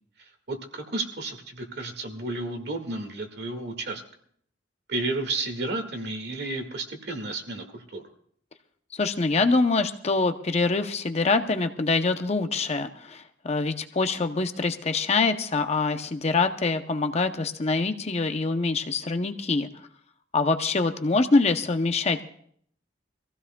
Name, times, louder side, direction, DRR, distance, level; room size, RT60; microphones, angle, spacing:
voice 1, 0.2-4.0 4.9-8.0, right 2 dB, 60° right, 5 dB, 1.8 m, -32 dB
voice 2, 8.9-19.7 20.3-22.2, left 3 dB, 35° left, 7 dB, 0.7 m, -25 dB
25.0 x 15.5 x 2.2 m, 0.63 s
head